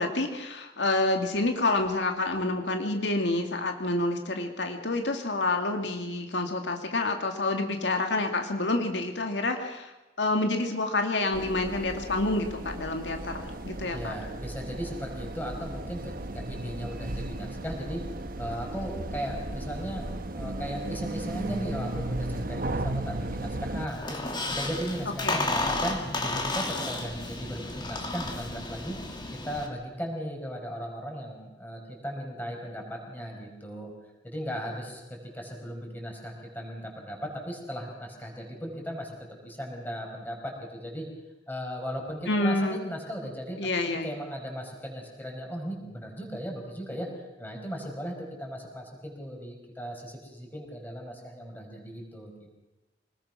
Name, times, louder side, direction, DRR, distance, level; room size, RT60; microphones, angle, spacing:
voice 1, 0.0-9.9 10.2-14.1 25.2-25.6 42.3-42.8 43.6-44.1, left 2 dB, 80° left, 4 dB, 2.1 m, -28 dB
sound 1, 11.3-23.9, right 1 dB, 50° right, 1.2 m, -35 dB
voice 2, 13.9-18.0 18.4-24.2 24.5-29.0 29.3-33.9 34.2-39.2 39.4-41.1 41.5-43.6 44.0-52.6, equal, 10° left, 0 dB, 5.6 m, -37 dB
Squeak, 23.9-29.7, left 2 dB, 25° left, 2.8 m, -32 dB
25.5 x 20.0 x 6.2 m, 1.0 s
head